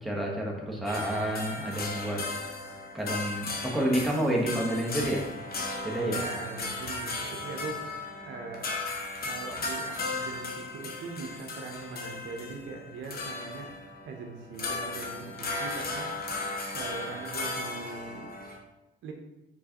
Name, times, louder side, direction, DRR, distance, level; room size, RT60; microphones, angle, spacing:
voice 1, 0.0-2.5 2.9-5.2 5.8-6.2, right 1 dB, ahead, -3 dB, 1.1 m, -29 dB
sound 1, 0.9-18.6, left 3 dB, 50° left, 0.9 m, -36 dB
voice 2, 6.1-8.8 9.2-13.7 14.0-16.1 16.7-18.3 19.0-19.1, right 4 dB, 75° right, 3 dB, 0.7 m, -41 dB
4.6 x 4.0 x 2.9 m, 0.96 s
cardioid pair, 90°, 20 cm